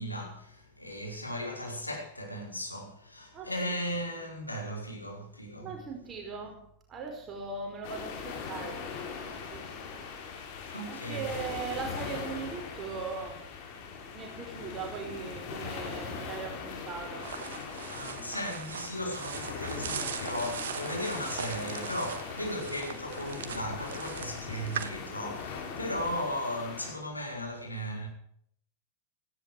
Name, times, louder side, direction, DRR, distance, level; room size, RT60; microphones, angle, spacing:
voice 1, 0.0-5.8 10.7-11.3 17.9-28.1, equal, 85° left, 5.0 m, -36 dB
voice 2, 5.6-6.5 6.9-10.0 10.9-13.4 14.1-17.3, right 5 dB, 25° right, 5.0 m, -39 dB
sound 1, 7.8-26.9, left 5 dB, 45° left, 4.5 m, -40 dB
sound 2, 17.2-24.9, right 8 dB, 60° right, 1.4 m, -40 dB
18.0 x 15.5 x 5.0 m
figure-of-eight pair, 90°, 0 cm